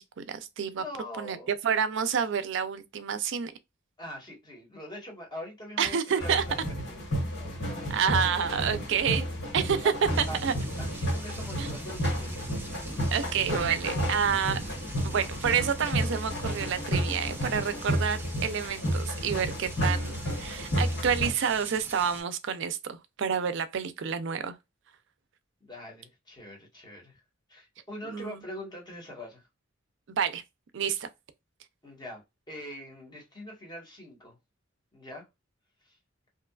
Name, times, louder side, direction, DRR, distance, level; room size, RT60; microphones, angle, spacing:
voice 1, 0.0-0.8 1.2-3.5 5.8-6.4 7.9-9.3 9.5-10.5 11.6-11.7 13.1-14.6 15.0-24.6 28.1-28.4 30.1-30.4 30.7-31.1, right 7 dB, 65° right, 0.4 m, -29 dB
voice 2, 0.7-1.6 4.0-7.0 7.4-8.6 9.8-9.9 10.3-10.4 10.8-12.4 25.6-27.2 27.5-29.5 31.8-34.4 34.9-35.2 35.8-36.0, equal, 20° left, 1.2 m, -43 dB
sound 1, 6.2-21.3, equal, 60° left, 1.3 m, -32 dB
sound 2, 10.1-22.2, right 2 dB, 10° right, 0.6 m, -43 dB
2.8 x 2.3 x 2.2 m
head